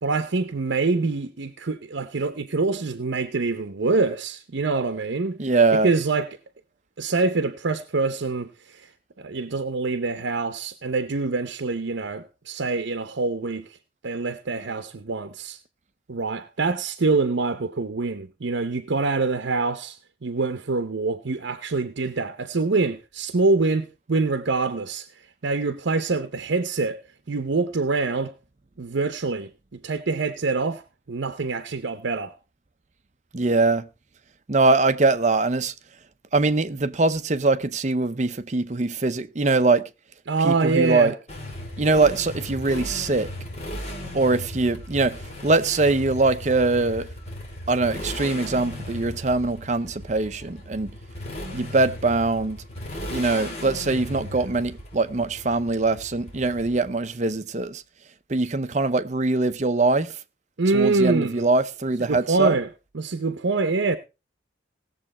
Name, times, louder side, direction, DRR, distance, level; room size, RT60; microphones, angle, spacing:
voice 1, 0.0-5.4 5.8-6.3 7.0-8.9 9.2-13.8 14.0-15.6 16.1-27.0 27.3-28.3 28.8-30.8 31.1-32.3 40.3-41.1 60.6-61.4 62.1-62.7 62.9-64.0, right 3 dB, 75° right, 0.7 m, -25 dB
voice 2, 5.4-5.9 33.3-33.9 34.5-35.7 36.3-39.9 40.4-41.1 41.8-43.3 44.1-47.1 47.7-50.9 51.5-52.6 53.1-57.8 58.3-60.2 60.7-62.6, right 3 dB, 40° right, 0.7 m, -22 dB
Motorcycle, 41.3-57.1, left 1 dB, 35° left, 2.9 m, -36 dB
17.5 x 7.3 x 4.2 m
head